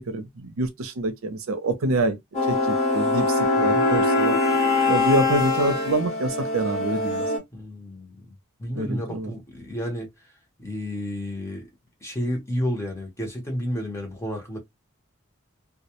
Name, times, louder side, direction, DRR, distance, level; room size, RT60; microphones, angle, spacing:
voice 1, 0.0-2.2 2.5-4.4 4.9-7.2 8.7-9.3, right 2 dB, 75° right, 0.6 m, -26 dB
sound 1, 2.3-7.4, left 2 dB, 30° left, 1.1 m, -23 dB
voice 2, 7.5-8.1 8.6-10.1 10.6-11.7 12.0-14.6, equal, 15° left, 0.8 m, -31 dB
2.3 x 2.1 x 2.8 m
head